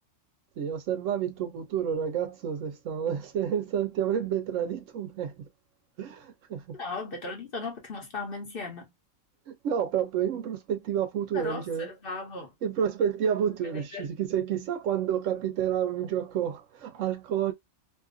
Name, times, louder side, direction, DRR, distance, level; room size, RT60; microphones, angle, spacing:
voice 1, 0.6-5.5 6.0-6.8 9.5-11.9 12.6-17.5, right 9 dB, 70° right, 0.9 m, -29 dB
voice 2, 6.8-8.9 11.3-12.5 13.6-14.0, left 3 dB, 45° left, 1.0 m, -37 dB
2.6 x 2.4 x 2.4 m
omnidirectional pair, 1.4 m